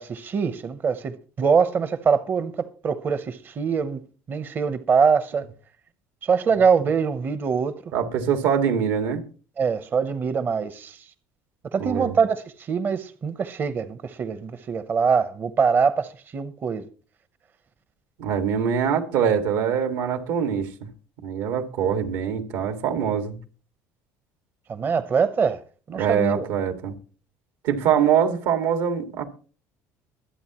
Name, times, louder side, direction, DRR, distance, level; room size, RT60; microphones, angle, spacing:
voice 1, 0.0-4.0 4.3-5.4 6.2-7.7 9.6-11.1 11.7-16.8 24.7-25.6 25.9-26.5, right 6 dB, 35° right, 0.9 m, -23 dB
voice 2, 7.9-9.2 11.8-12.2 18.2-20.7 21.2-23.4 25.9-26.9 27.6-29.2, right 8 dB, 80° right, 2.0 m, -23 dB
23.5 x 8.3 x 3.0 m
cardioid pair, 120°, 6 cm